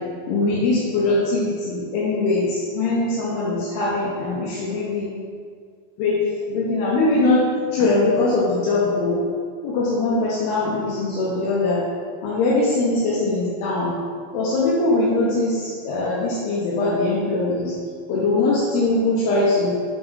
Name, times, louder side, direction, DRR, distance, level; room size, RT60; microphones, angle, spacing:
voice 1, 0.3-5.2 6.0-6.2 6.5-7.5 7.7-9.2 9.6-11.8 12.2-13.9 14.3-17.7 18.1-19.8, left 2 dB, 80° left, -6 dB, 2.7 m, -21 dB
8.0 x 3.6 x 3.5 m, 2.1 s
omnidirectional pair, 4.7 m